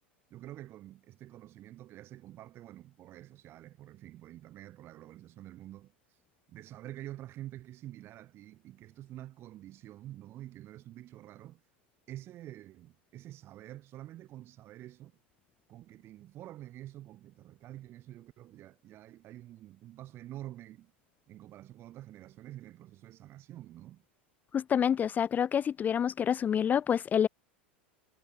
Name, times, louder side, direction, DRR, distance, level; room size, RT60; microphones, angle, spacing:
voice 1, 0.3-5.9 6.5-11.6 12.1-15.2 15.7-20.9 21.3-24.0, right 14 dB, 45° right, 6.2 m, -48 dB
voice 2, 24.5-27.3, left 8 dB, 30° left, 0.7 m, -27 dB
hypercardioid pair, 90°, 6 cm